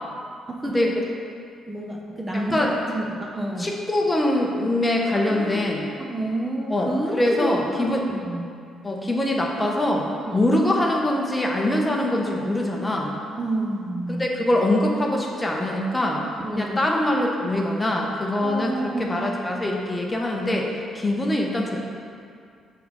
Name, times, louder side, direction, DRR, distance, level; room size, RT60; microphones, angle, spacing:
voice 1, 0.2-1.0 1.7-3.7 5.1-8.5 10.2-10.5 13.4-14.3 16.4-16.8 18.4-19.2, right 1 dB, 20° right, -1 dB, 0.8 m, -30 dB
voice 2, 2.3-2.7 3.6-5.9 6.7-8.0 8.8-13.1 14.2-16.2 16.6-21.8, left 1 dB, 15° left, 0 dB, 1.0 m, -23 dB
6.9 x 3.9 x 6.3 m, 2.3 s
cardioid pair, 90°, 0 cm